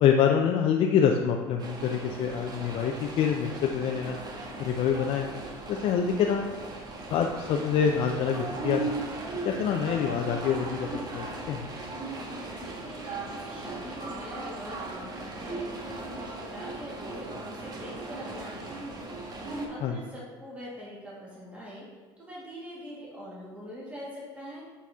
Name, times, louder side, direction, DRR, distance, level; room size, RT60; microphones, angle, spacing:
voice 1, 0.0-4.2 4.6-5.3 5.7-6.5 7.1-8.9 9.4-11.7 19.8-20.0, left 7 dB, 55° left, 2 dB, 0.5 m, -26 dB
sound 1, 1.6-19.7, right 2 dB, 35° right, 1.3 m, -37 dB
voice 2, 12.6-19.0 19.7-21.9 22.2-24.6, equal, 10° right, -6 dB, 2.0 m, -43 dB
8.2 x 4.2 x 3.6 m, 1.4 s
supercardioid pair, 95°, 11 cm